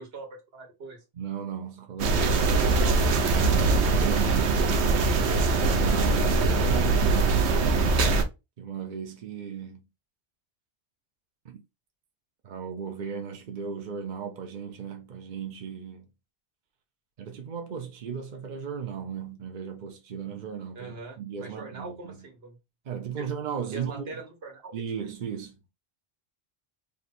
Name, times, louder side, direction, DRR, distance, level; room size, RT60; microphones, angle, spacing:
voice 1, 0.0-1.0 2.5-3.1 20.7-22.6 23.2-23.3 23.7-24.7, right 3 dB, 70° right, 1.4 m, -41 dB
voice 2, 1.2-2.6 3.4-4.8 5.6-8.2 8.6-9.9 11.4-11.6 12.4-16.1 17.2-22.3 22.9-24.1 24.7-25.7, right 7 dB, 50° right, 0.7 m, -36 dB
sound 1, 2.0-8.2, right 3 dB, 85° right, 1.0 m, -22 dB
3.2 x 2.7 x 4.0 m
omnidirectional pair, 1.1 m